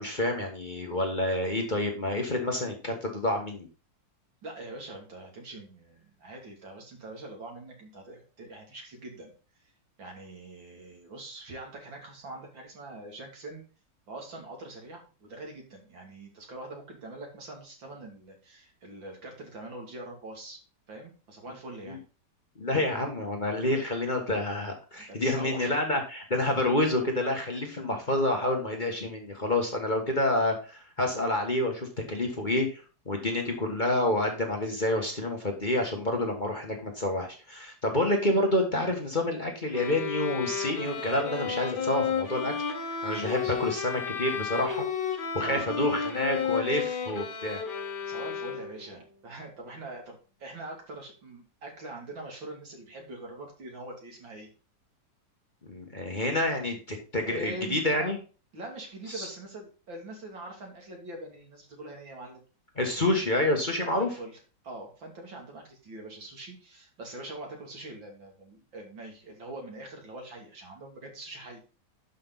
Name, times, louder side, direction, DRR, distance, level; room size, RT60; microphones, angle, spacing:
voice 1, 0.0-3.7 21.9-22.0 22.6-42.5 43.0-44.8 45.3-47.6 55.7-58.2 59.1-59.3 62.8-64.1, left 1 dB, 25° left, 2 dB, 1.6 m, -28 dB
voice 2, 4.4-9.3 10.0-13.6 14.1-20.6 20.9-22.0 25.0-25.8 42.6-42.7 43.3-43.7 45.4-45.9 48.0-54.5 57.2-58.1 58.5-62.4 63.8-64.4 64.6-71.6, right 2 dB, 75° right, 1 dB, 3.5 m, -43 dB
sound 1, 39.7-48.9, left 6 dB, 60° left, 2.6 m, -32 dB
11.0 x 5.7 x 4.0 m, 0.34 s
omnidirectional pair, 2.1 m